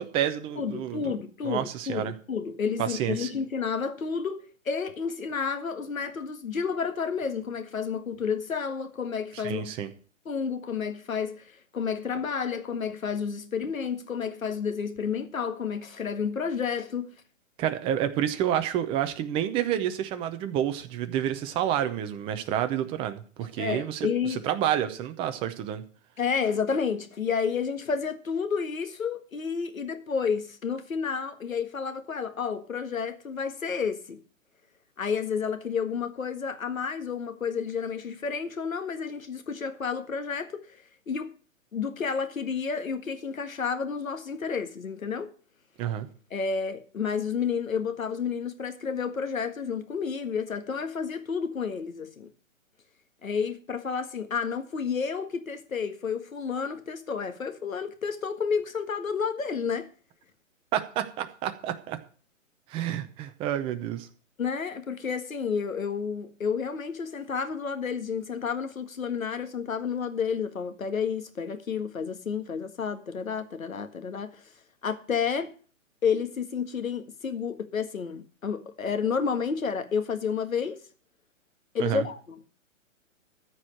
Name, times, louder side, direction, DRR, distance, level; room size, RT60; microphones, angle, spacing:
voice 1, 0.0-1.1 1.4-2.1 2.8-3.3 9.4-9.9 17.6-25.8 45.8-46.1 60.7-62.0 62.7-64.1 81.8-82.1, right 10 dB, 15° right, 0.7 m, -29 dB
voice 2, 0.6-9.7 10.2-17.1 23.6-24.4 26.2-34.2 35.0-40.6 41.1-41.3 41.7-45.3 46.3-52.3 53.2-59.9 64.4-74.4 74.8-75.5 76.0-80.8 81.7-82.4, left 6 dB, 90° left, 1.8 m, -30 dB
14.0 x 4.8 x 8.8 m
hypercardioid pair, 145°, 40 cm